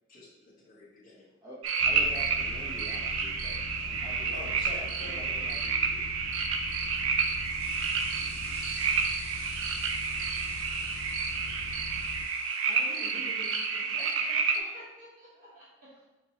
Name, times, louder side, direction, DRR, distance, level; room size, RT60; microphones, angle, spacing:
voice 1, 0.1-1.3 1.9-2.2 4.3-5.5, left 2 dB, 45° left, -9 dB, 1.2 m, -46 dB
voice 2, 1.4-4.4 4.7-6.1, right 1 dB, 15° right, -7 dB, 0.9 m, -47 dB
sound 1, 1.6-14.6, right 5 dB, 70° right, 0.4 m, -30 dB
sound 2, 1.8-12.3, left 4 dB, 70° left, 0.3 m, -43 dB
sound 3, 6.5-13.5, equal, 10° left, 0.9 m, -50 dB
voice 3, 12.7-16.0, equal, 40° right, -9 dB, 1.2 m, -48 dB
5.1 x 3.2 x 2.9 m, 1.1 s
head